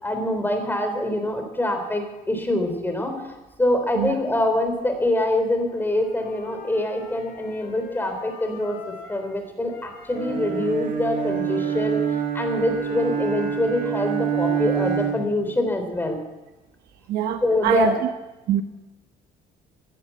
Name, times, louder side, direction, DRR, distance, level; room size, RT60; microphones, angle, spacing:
voice 1, 0.0-3.3 3.6-12.0 12.3-16.2 17.4-18.0, left 1 dB, 10° left, 5 dB, 3.7 m, -25 dB
Wind instrument woodwind instrument, 5.7-9.3 9.6-13.6, left 4 dB, 70° left, 3.8 m, -43 dB
Bowed string instrument, 10.2-15.4, right 8 dB, 55° right, 2.2 m, -26 dB
voice 2, 17.1-18.0 18.5-18.6, right 11 dB, 75° right, 7 dB, 1.0 m, -23 dB
16.0 x 10.5 x 7.3 m, 1.1 s
cardioid pair, 110°, 17 cm